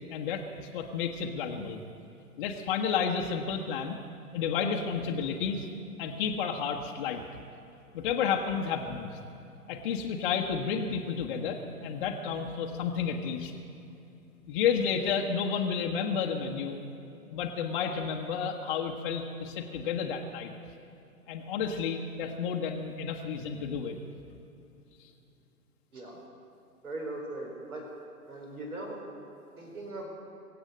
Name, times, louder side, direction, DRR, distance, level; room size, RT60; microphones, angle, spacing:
voice 1, 0.1-0.5 0.7-1.8 2.4-4.0 4.3-5.6 6.0-7.2 7.9-9.1 9.7-13.5 14.5-16.8 17.3-20.5 21.3-24.0, left 6 dB, 35° left, 1 dB, 1.0 m, -31 dB
voice 2, 26.8-27.8 28.3-29.0 29.6-30.1, right 2 dB, 70° right, 0 dB, 4.5 m, -39 dB
23.5 x 8.1 x 6.4 m, 2.8 s
figure-of-eight pair, 120°, 46 cm